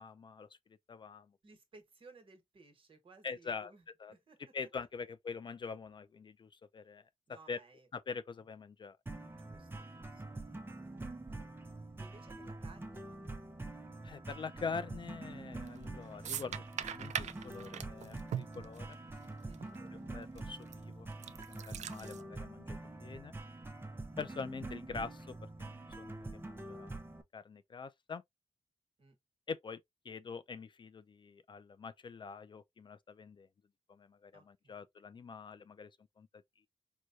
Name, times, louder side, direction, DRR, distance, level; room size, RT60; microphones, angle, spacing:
voice 1, 0.0-1.4 3.2-3.7 4.0-4.1 4.5-7.6 7.9-9.0 14.0-19.0 19.9-23.3 24.2-27.0 27.3-28.2 29.5-33.5 33.9-36.7, left 5 dB, 40° left, 0.4 m, -45 dB
voice 2, 1.4-3.8 4.1-4.4 7.3-7.9 9.3-11.6 12.0-13.1 19.4-19.8 29.0-29.2 34.3-34.8, right 3 dB, 45° right, 1.2 m, -60 dB
sound 1, 9.1-27.2, right 2 dB, 20° right, 0.6 m, -45 dB
sound 2, 15.6-15.9 16.2-19.3 19.5-19.7 20.4-20.7 21.1-22.2, right 9 dB, 80° right, 0.4 m, -40 dB
4.6 x 2.2 x 2.5 m
wide cardioid pair, 100°, 12 cm